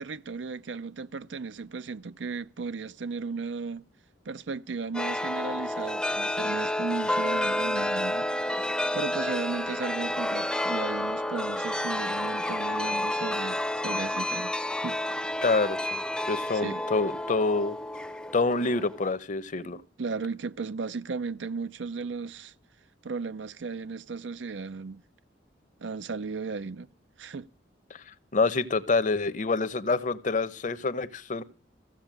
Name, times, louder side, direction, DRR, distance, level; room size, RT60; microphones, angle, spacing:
voice 1, 0.0-3.8 4.3-8.3 8.9-14.6 14.8-15.0 16.6-16.8 20.0-22.5 23.0-25.0 25.8-26.9 27.2-27.5, right 4 dB, 75° right, 0.6 m, -35 dB
Chime, 4.9-19.2, left 1 dB, 5° left, 0.6 m, -30 dB
voice 2, 15.4-17.8 18.3-19.8 28.3-31.4, left 3 dB, 45° left, 0.8 m, -27 dB
15.0 x 7.1 x 8.9 m
head